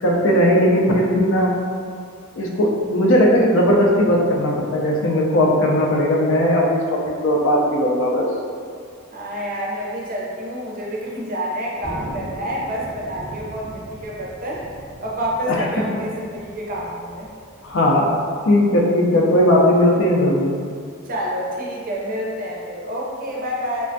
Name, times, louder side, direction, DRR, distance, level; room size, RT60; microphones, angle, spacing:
voice 1, 0.0-1.6 2.3-8.3 15.5-15.7 17.6-18.2 18.5-20.5, left 1 dB, 65° left, -2 dB, 0.4 m, -17 dB
voice 2, 9.1-14.7 15.0-17.3 21.0-23.9, equal, 45° right, -4 dB, 0.5 m, -28 dB
Thunder, 11.8-18.7, right 1 dB, 10° left, 0.6 m, -39 dB
3.2 x 2.1 x 2.6 m, 2.2 s
head